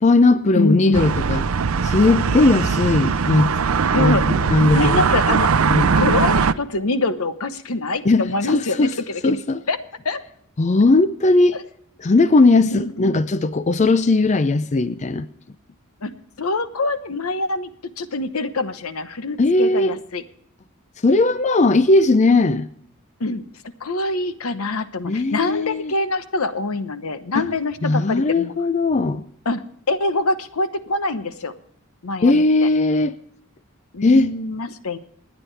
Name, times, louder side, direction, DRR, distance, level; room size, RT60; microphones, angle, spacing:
voice 1, 0.0-1.4 1.8-3.5 3.9-5.1 5.7-5.9 8.0-8.9 9.2-9.6 10.6-11.6 12.0-15.3 19.4-19.9 21.0-22.7 25.0-25.9 27.3-27.5 27.8-29.2 32.2-33.1 34.0-34.3, left 2 dB, 35° left, 0.5 m, -18 dB
voice 2, 0.5-1.1 3.9-4.3 4.7-5.5 5.8-9.4 9.7-9.8 10.0-10.2 11.5-11.6 12.7-13.2 16.0-17.7 18.0-20.2 23.2-23.5 23.8-28.5 29.5-31.5 32.0-32.7 33.9-35.0, left 3 dB, 85° left, 1.0 m, -25 dB
sound 1, 0.9-6.5, right 5 dB, 75° right, 0.6 m, -20 dB
28.0 x 9.5 x 3.3 m
head